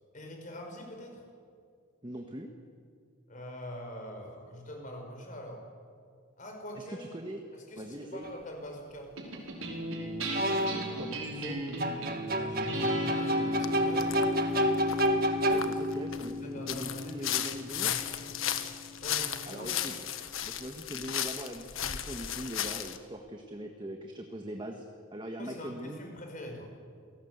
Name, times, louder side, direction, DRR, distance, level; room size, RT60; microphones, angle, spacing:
voice 1, 0.1-1.2 3.3-5.6 6.4-7.0 7.5-9.1 12.2-14.3 16.4-18.4 19.0-19.7 25.4-26.7, left 1 dB, 40° left, 3 dB, 5.1 m, -44 dB
voice 2, 2.0-2.5 6.7-7.4 7.8-8.3 11.0-11.6 15.5-18.0 19.5-19.9 20.4-24.9 25.1-26.0, right 1 dB, 20° right, 3 dB, 1.5 m, -41 dB
sound 1, 8.2-8.4 10.3-10.9 11.8-16.1, equal, 45° right, 1.8 m, -29 dB
sound 2, 9.2-19.8, left 1 dB, 85° right, 5.2 m, -36 dB
sound 3, 13.6-13.7 14.0-14.2 14.6-16.3 16.7-23.0, left 10 dB, 75° left, 1.4 m, -35 dB
27.5 x 18.5 x 8.2 m, 2.3 s
head